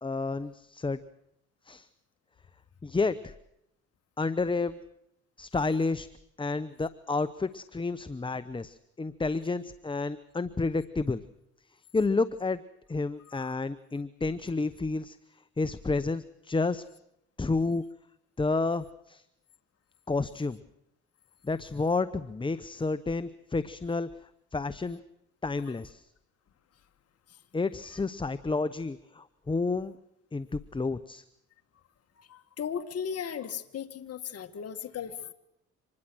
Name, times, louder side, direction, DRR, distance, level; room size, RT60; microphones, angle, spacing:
voice 1, 0.0-1.0 1.7-1.9 2.8-3.3 4.2-4.8 5.4-6.1 6.4-11.2 11.9-12.6 12.9-15.2 15.6-16.8 17.4-17.8 18.4-19.2 20.1-20.6 21.4-24.1 24.5-25.0 25.4-26.1 27.5-30.0 30.3-31.2, left 3 dB, 15° left, 13 dB, 0.8 m, -30 dB
voice 2, 32.3-35.3, left 7 dB, 55° left, 7 dB, 1.7 m, -36 dB
25.5 x 20.5 x 6.2 m, 0.79 s
cardioid pair, 90°, 30 cm